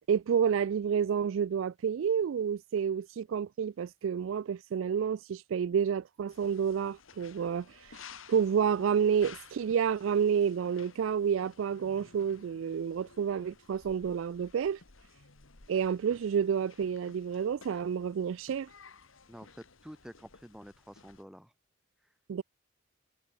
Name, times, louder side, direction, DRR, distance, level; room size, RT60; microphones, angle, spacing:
voice 1, 0.0-8.0 8.3-14.8 15.7-18.7 22.3-22.4, right 7 dB, 75° right, 0.3 m, -29 dB
sound 1, 6.3-21.2, left 5 dB, 80° left, 2.1 m, -55 dB
voice 2, 19.3-21.5, equal, 5° right, 1.8 m, -49 dB
head